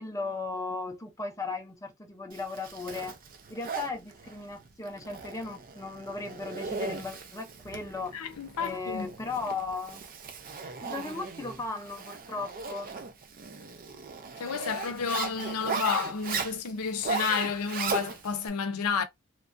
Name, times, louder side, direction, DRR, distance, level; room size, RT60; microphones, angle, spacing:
voice 1, 0.0-3.2 3.5-8.2 8.6-10.0 10.8-12.9, left 3 dB, 15° left, 0.5 m, -36 dB
Zipper (clothing), 2.3-18.5, right 5 dB, 40° right, 0.5 m, -38 dB
voice 2, 8.1-9.1 14.4-19.0, left 6 dB, 85° left, 0.6 m, -31 dB
3.1 x 2.3 x 2.5 m
head